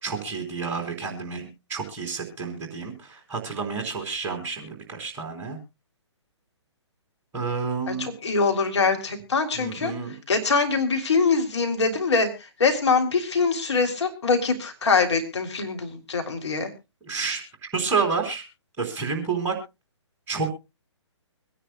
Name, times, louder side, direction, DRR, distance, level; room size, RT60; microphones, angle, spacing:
voice 1, 0.0-5.6 7.3-8.1 9.5-10.2 17.0-17.4 17.7-18.4 18.8-19.6 20.3-20.5, right 5 dB, 15° right, 2 dB, 3.6 m, -29 dB
voice 2, 7.9-9.9 10.3-12.3 12.6-16.7, left 4 dB, 65° left, 4 dB, 3.2 m, -23 dB
25.0 x 10.0 x 2.3 m, 0.26 s
figure-of-eight pair, 130°, 16 cm